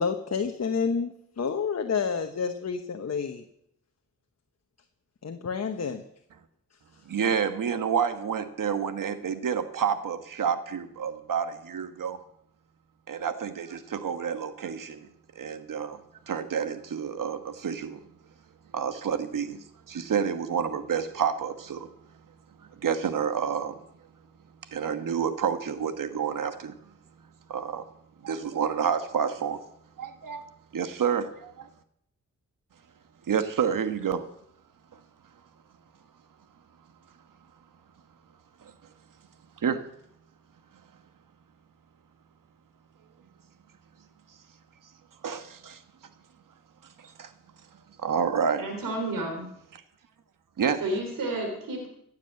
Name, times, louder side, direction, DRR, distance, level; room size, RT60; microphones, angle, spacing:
voice 1, 0.0-3.4 5.2-6.0, left 5 dB, 50° left, 6 dB, 1.1 m, -29 dB
voice 2, 7.0-12.2 13.1-15.1 15.3-16.0 16.3-18.0 18.7-21.9 22.8-23.7 24.7-26.7 27.5-27.8 28.2-29.6 30.0-30.4 30.7-31.7 33.3-34.3 34.9-35.0 38.6-38.7 39.6-39.8 45.2-45.8 47.0-47.3 48.0-48.6 50.6-50.8, right 7 dB, 75° right, 10 dB, 1.4 m, -29 dB
voice 3, 48.6-49.5 50.8-51.9, right 2 dB, 90° right, 4 dB, 3.4 m, -31 dB
15.5 x 7.5 x 7.7 m, 0.73 s
cardioid pair, 50°, 33 cm